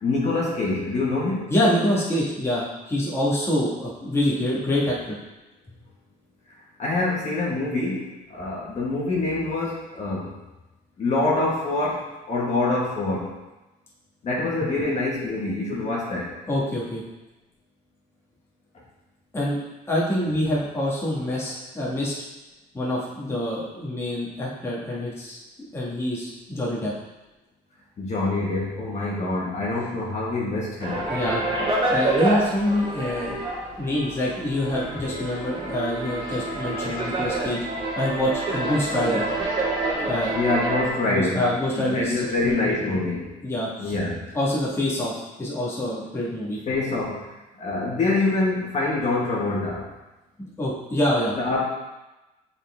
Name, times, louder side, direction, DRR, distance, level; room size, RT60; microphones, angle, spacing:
voice 1, 0.0-1.5 6.8-10.3 11.0-13.3 14.2-16.3 28.0-31.0 40.3-41.5 41.8-43.3 43.8-44.2 46.7-47.2 47.6-49.8 51.4-51.6, left 2 dB, 45° left, -4 dB, 1.7 m, -25 dB
voice 2, 1.5-5.2 16.5-17.0 19.3-19.6 19.9-22.1 22.7-25.4 25.7-26.9 31.1-31.4 31.9-33.4 33.8-37.6 38.0-39.2 40.1-40.3 41.1-43.0 43.4-44.0 44.3-46.6 50.6-51.3, left 1 dB, 15° left, -6 dB, 1.7 m, -26 dB
sound 1, 30.8-40.9, right 2 dB, 30° right, 1.7 m, -27 dB
7.1 x 4.4 x 3.6 m, 1.0 s
cardioid pair, 110°, 17 cm